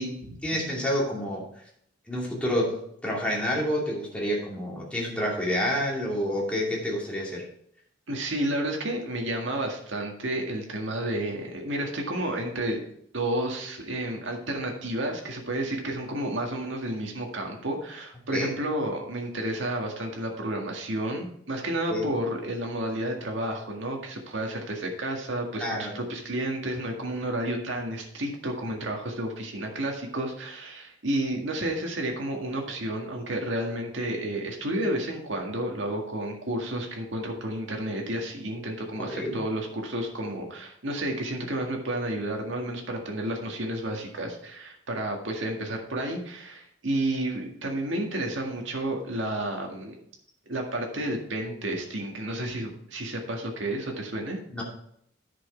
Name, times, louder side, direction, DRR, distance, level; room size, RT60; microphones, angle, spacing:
voice 1, 0.0-1.5 2.1-7.4 18.3-18.5 21.9-22.1 25.6-25.9 39.0-39.4 54.5-54.6, equal, 5° left, -4 dB, 2.6 m, -29 dB
voice 2, 8.1-12.8 13.1-50.0 50.5-54.4, right 1 dB, 70° right, 1 dB, 1.9 m, -31 dB
10.5 x 6.3 x 4.5 m, 0.69 s
head